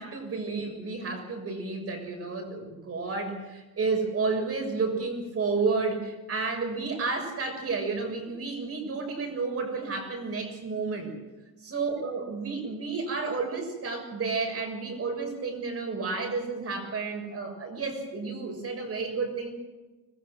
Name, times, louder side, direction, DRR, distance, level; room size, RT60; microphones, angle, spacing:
voice 1, 0.0-11.1 11.6-19.5, right 4 dB, 40° right, 4 dB, 6.7 m, -31 dB
25.5 x 20.5 x 6.5 m, 1.1 s
cardioid pair, 170°, 36 cm